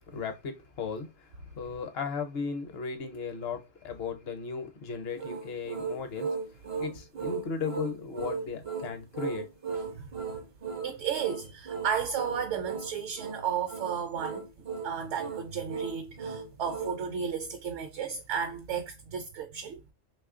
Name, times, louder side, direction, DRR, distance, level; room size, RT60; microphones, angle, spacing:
voice 1, 0.0-9.4, left 5 dB, 60° left, 0.8 m, -36 dB
sound 1, 5.1-17.0, right 5 dB, 45° right, 0.4 m, -37 dB
voice 2, 10.8-14.4 14.8-19.8, right 7 dB, 70° right, 0.9 m, -33 dB
3.0 x 2.4 x 3.6 m
omnidirectional pair, 1.3 m